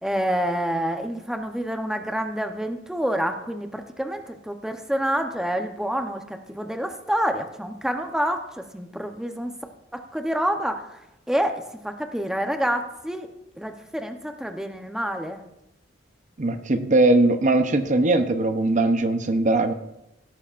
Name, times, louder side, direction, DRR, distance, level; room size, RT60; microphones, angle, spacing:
voice 1, 0.0-9.5 9.9-11.0 11.3-13.3 13.6-15.4, equal, 5° right, 5 dB, 0.8 m, -28 dB
voice 2, 16.4-19.7, right 2 dB, 40° right, 8 dB, 0.7 m, -20 dB
17.0 x 13.0 x 2.5 m, 0.87 s
head